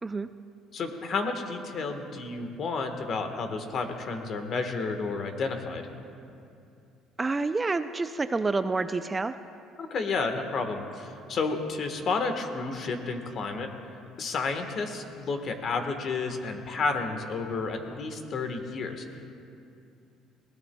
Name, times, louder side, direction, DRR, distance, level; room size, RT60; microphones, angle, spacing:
voice 1, 0.7-5.9 9.8-13.7 14.2-19.0, left 4 dB, 50° left, 6 dB, 1.3 m, -31 dB
voice 2, 7.2-9.4, right 3 dB, 20° right, 10 dB, 0.4 m, -28 dB
20.5 x 17.5 x 2.3 m, 2.5 s
cardioid pair, 110°, 0 cm